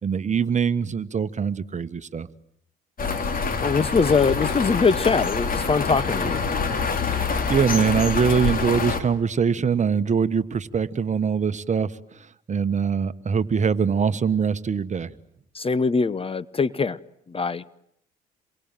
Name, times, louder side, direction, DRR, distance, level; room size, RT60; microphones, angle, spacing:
voice 1, 0.0-2.3 7.1-15.1, right 6 dB, 35° right, 13 dB, 1.4 m, -23 dB
sound 1, 3.0-9.0, left 5 dB, 45° left, 3.8 m, -26 dB
voice 2, 3.6-6.4 15.6-17.0 17.3-17.6, left 5 dB, 25° left, 18 dB, 1.1 m, -22 dB
28.0 x 23.5 x 9.2 m, 0.72 s
hypercardioid pair, 60°, 21 cm